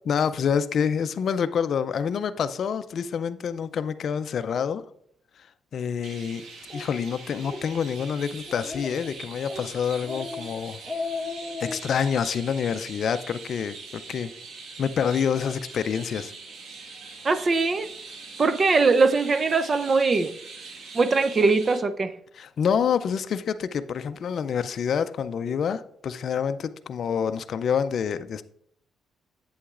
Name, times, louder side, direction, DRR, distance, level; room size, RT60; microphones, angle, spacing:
voice 1, 0.1-4.8 5.4-5.5 5.7-6.4 6.7-10.8 11.6-14.3 14.8-16.3 22.4-28.4, left 7 dB, 60° left, 0.4 m, -27 dB
Chirp tweet, 6.0-21.8, right 4 dB, 70° right, 1.6 m, -42 dB
Speech, 6.7-6.9 7.3-7.6 8.0-8.1 8.5-9.1 9.5-9.7 10.0-10.4 10.7-11.8, left 3 dB, 10° left, 1.3 m, -34 dB
voice 2, 17.2-17.9 18.4-20.3 20.9-22.1, right 4 dB, 35° right, 0.5 m, -21 dB
8.4 x 7.8 x 2.4 m
cardioid pair, 90°, 0 cm